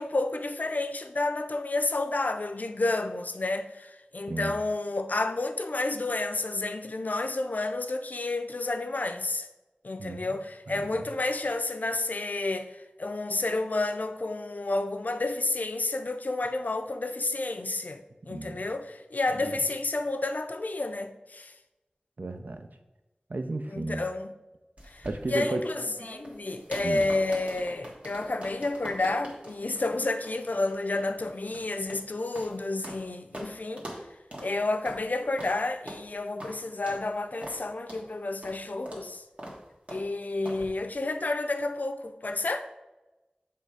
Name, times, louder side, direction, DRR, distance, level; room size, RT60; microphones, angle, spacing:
voice 1, 0.0-9.5 9.8-12.7 13.0-21.5 23.7-24.3 24.9-33.9 34.4-39.2 39.9-42.7, left 2 dB, 65° left, 0.4 m, -30 dB
voice 2, 10.7-11.0 18.3-18.7 22.2-22.7 23.3-24.0 25.0-25.6 26.8-27.0, right 2 dB, 70° right, 0.6 m, -33 dB
sound 1, 24.8-33.0 33.3-33.5 33.8-34.0 34.3-34.5 34.8-35.0 35.4-35.5 35.9-36.0 36.4-36.5 36.9-37.0 37.4-37.6 37.9-38.0 38.4-38.6 38.9-39.0 39.4-39.6 39.9-40.0 40.4-40.6, right 1 dB, 45° right, 1.5 m, -43 dB
6.7 x 3.5 x 4.8 m
wide cardioid pair, 40°, 3 cm